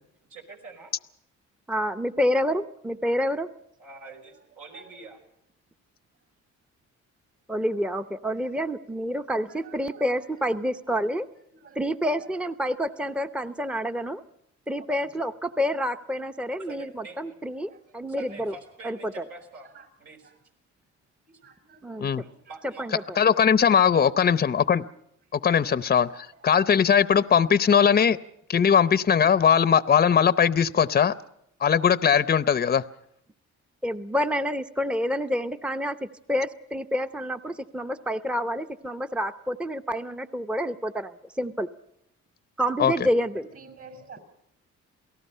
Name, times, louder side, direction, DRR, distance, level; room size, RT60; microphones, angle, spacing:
voice 1, 0.3-0.9 3.8-5.2 16.6-17.3 18.1-19.7 20.0-20.3 22.1-23.0, right 4 dB, 75° right, 2 dB, 5.2 m, -45 dB
voice 2, 1.7-3.5 7.5-11.3 11.7-14.2 14.7-18.5 18.8-19.2 21.8-22.1 22.6-22.9 33.8-41.7 42.6-43.5, equal, 5° right, 10 dB, 0.8 m, -28 dB
voice 3, 9.1-10.3 10.6-11.1 11.5-12.0 17.7-17.8 19.7-19.9 20.2-20.3 21.3-22.6 23.0-23.1 25.6-26.3 43.3-44.2, right 4 dB, 50° right, 8 dB, 5.8 m, -51 dB
voice 4, 23.2-24.8 25.3-28.2 28.5-31.1 31.6-32.8 42.8-42.9, left 7 dB, 30° left, 15 dB, 0.7 m, -20 dB
28.5 x 18.0 x 5.6 m, 0.75 s
cardioid pair, 90°, 30 cm